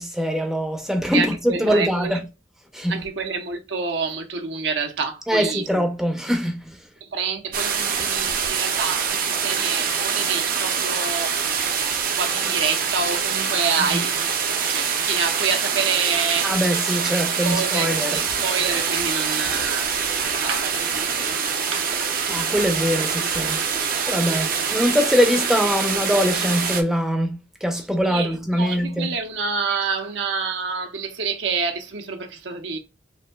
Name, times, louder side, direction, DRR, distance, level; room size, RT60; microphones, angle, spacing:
voice 1, 0.0-2.2 2.7-2.9 5.3-6.8 13.9-14.0 16.4-18.2 22.3-23.6 24.1-29.1, equal, ahead, 0.6 m, -23 dB
voice 2, 1.1-2.2 2.9-5.6 7.0-16.5 17.4-22.2 28.0-32.8, right 5 dB, 80° right, 0.8 m, -28 dB
sound 1, 7.5-26.8, right 6 dB, 50° right, 0.5 m, -24 dB
4.9 x 2.7 x 2.3 m
head